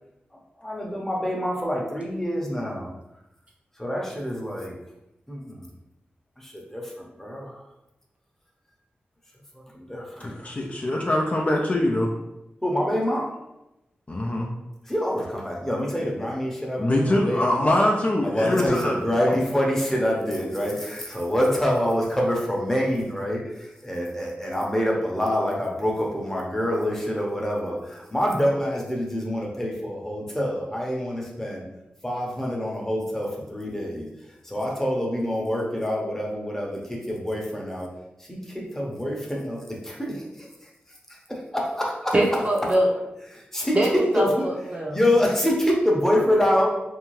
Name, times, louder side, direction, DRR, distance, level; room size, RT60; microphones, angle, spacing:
voice 1, 0.6-2.9 3.8-4.7 5.3-5.7 6.4-7.5 9.7-10.3 12.6-13.3 14.9-17.7 18.2-31.6 32.0-34.1 34.4-37.9 38.3-40.5 41.3-42.1 43.3-43.8 44.1-44.5 44.9-46.7, equal, 10° left, -2 dB, 0.8 m, -26 dB
voice 2, 10.2-12.1 14.1-14.5 16.8-19.0, left 1 dB, 35° left, -1 dB, 0.4 m, -23 dB
voice 3, 42.1-42.9 43.7-45.0, right 1 dB, 30° right, -2 dB, 0.7 m, -23 dB
2.6 x 2.2 x 3.1 m, 0.92 s
cardioid pair, 50°, 4 cm